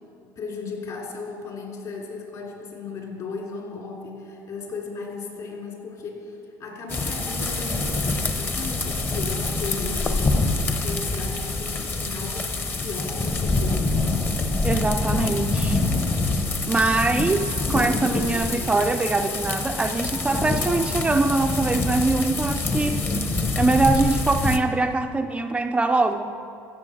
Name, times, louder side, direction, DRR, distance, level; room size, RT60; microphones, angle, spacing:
voice 1, 0.3-13.9, left 4 dB, 50° left, -1 dB, 3.3 m, -36 dB
sound 1, 6.9-24.6, left 3 dB, 25° left, 1.0 m, -25 dB
voice 2, 14.6-15.8 16.2-16.3 16.7-23.0 23.6-26.3, right 3 dB, 15° right, 5 dB, 0.4 m, -23 dB
15.5 x 7.0 x 6.6 m, 2.7 s
supercardioid pair, 115°, 8 cm